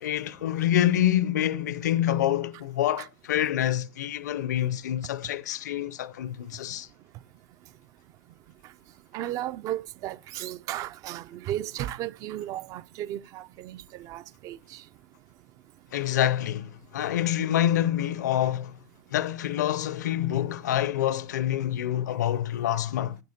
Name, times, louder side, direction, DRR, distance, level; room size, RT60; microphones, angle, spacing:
voice 1, 0.0-6.9 15.9-18.7 19.1-23.2, left 12 dB, 70° left, 0.6 m, -26 dB
voice 2, 9.1-14.8, right 13 dB, 35° right, 0.4 m, -35 dB
12.0 x 9.2 x 2.8 m
hypercardioid pair, 110°, 10 cm